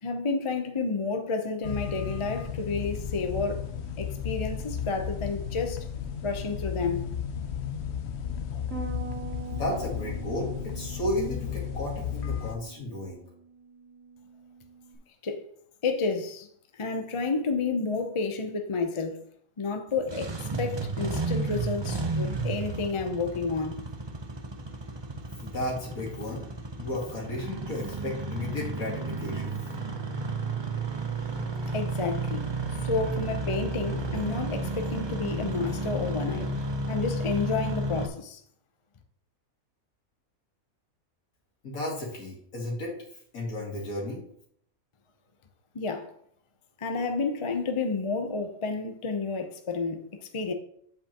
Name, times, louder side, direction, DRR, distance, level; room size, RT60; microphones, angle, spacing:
voice 1, 0.0-3.7 4.0-5.9 6.2-7.1 15.2-15.4 15.8-16.5 16.7-19.2 19.6-23.8 31.7-32.5 32.8-36.5 36.9-38.4 45.7-46.1 46.8-50.5, left 4 dB, 35° left, 0.5 m, -30 dB
sound 1, 1.6-12.6, left 8 dB, 55° left, 0.9 m, -34 dB
Bass guitar, 8.7-15.0, right 5 dB, 65° right, 2.2 m, -44 dB
voice 2, 9.5-13.2 25.4-29.6 41.6-42.9 43.3-44.2, left 1 dB, 80° left, 2.2 m, -34 dB
Engine starting, 19.9-38.1, right 2 dB, 30° right, 0.4 m, -32 dB
7.7 x 7.6 x 2.9 m
omnidirectional pair, 1.5 m